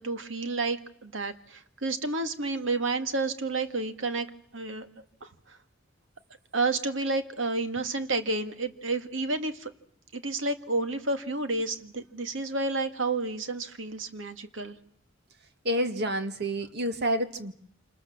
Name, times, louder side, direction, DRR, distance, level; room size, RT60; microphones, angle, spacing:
voice 1, 0.0-4.3 4.5-4.9 5.2-5.3 6.5-9.7 10.1-14.8, right 3 dB, 75° right, 8 dB, 2.0 m, -30 dB
voice 2, 15.6-17.5, equal, 60° right, 8 dB, 2.0 m, -28 dB
28.0 x 27.0 x 7.3 m, 0.68 s
head